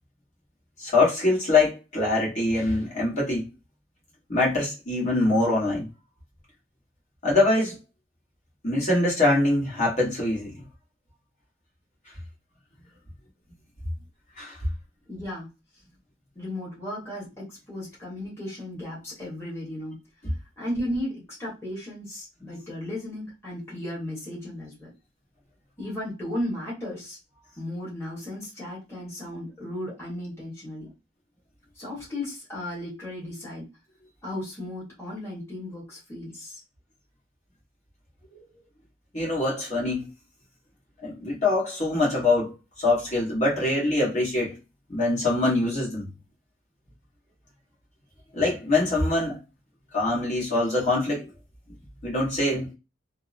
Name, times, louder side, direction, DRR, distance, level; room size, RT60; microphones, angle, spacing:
voice 1, 0.8-3.4 4.3-5.9 7.2-7.8 8.6-10.5 14.4-14.6 39.1-40.1 41.0-42.5 42.8-44.5 44.9-46.1 48.3-49.4 49.9-51.2 52.0-52.7, left 2 dB, 35° left, 1.3 m, -23 dB
voice 2, 15.1-15.5 16.3-20.0 20.6-24.9 25.8-27.2 27.6-30.9 31.8-33.6 34.2-36.6, left 1 dB, 15° left, 1.2 m, -35 dB
2.7 x 2.0 x 2.5 m
head